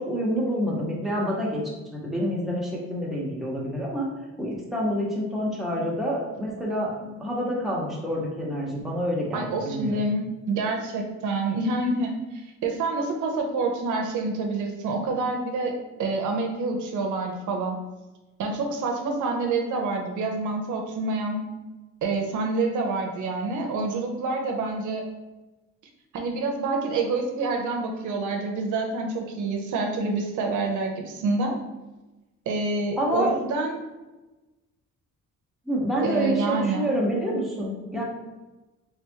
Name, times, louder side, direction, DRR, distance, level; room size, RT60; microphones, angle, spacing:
voice 1, 0.0-1.6 1.9-4.1 4.4-6.9 7.2-10.0 33.0-33.3 35.7-38.0, equal, ahead, -5 dB, 1.1 m, -27 dB
voice 2, 9.3-17.8 18.4-21.5 22.0-25.0 26.1-31.6 32.5-33.8 36.0-36.9, right 3 dB, 75° right, 2 dB, 0.7 m, -27 dB
3.5 x 3.4 x 2.8 m, 1.1 s
cardioid pair, 90°, 30 cm